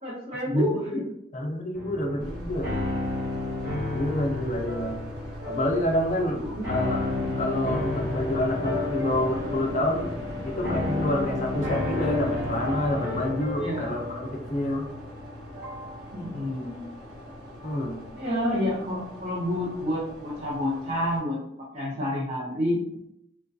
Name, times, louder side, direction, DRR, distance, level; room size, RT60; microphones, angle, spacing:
voice 1, 0.0-1.0 6.3-6.7 13.6-14.1 16.1-16.8 18.1-21.4 21.7-22.8, left 1 dB, 35° right, -7 dB, 0.6 m, -29 dB
voice 2, 0.5-1.0 1.3-2.7 3.9-5.0 5.4-10.2 10.4-14.9 17.6-18.0, left 1 dB, 35° left, 1 dB, 0.4 m, -28 dB
sound 1, 1.7-18.0, left 2 dB, 15° right, 1.3 m, -33 dB
sound 2, 2.2-21.2, equal, 55° right, 0.9 m, -43 dB
sound 3, 6.8-13.3, left 2 dB, 85° right, 1.3 m, -36 dB
2.6 x 2.2 x 2.3 m, 0.78 s
head